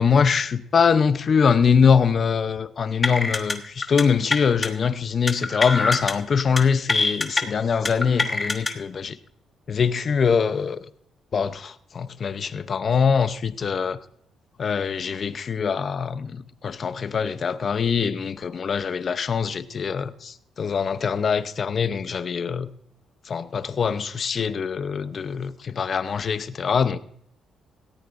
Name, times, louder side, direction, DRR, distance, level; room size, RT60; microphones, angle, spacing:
voice 1, 0.0-9.2 9.7-10.9 11.3-14.0 14.6-22.7 23.3-27.0, left 6 dB, 45° left, 0.7 m, -23 dB
sound 1, 3.0-3.5 3.8-4.0 4.3-4.7 5.3-6.1 6.4-6.6 6.9-7.4 7.8-8.7, left 3 dB, 25° left, 1.3 m, -24 dB
18.0 x 14.0 x 2.6 m
cardioid pair, 90°, 0 cm